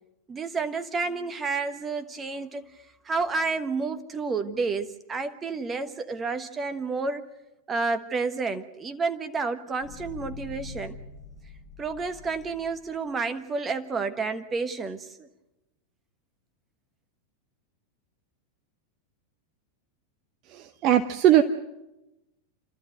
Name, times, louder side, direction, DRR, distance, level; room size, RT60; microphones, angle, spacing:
voice 1, 0.3-2.7 3.0-7.2 7.7-11.0 11.8-15.3, right 4 dB, 20° right, 10 dB, 1.4 m, -30 dB
sound 1, 9.8-12.9, left 5 dB, 45° left, 6.3 m, -43 dB
voice 2, 20.5-21.4, right 12 dB, 35° right, 8 dB, 0.8 m, -20 dB
29.5 x 13.0 x 7.9 m, 0.98 s
figure-of-eight pair, 90°, 0 cm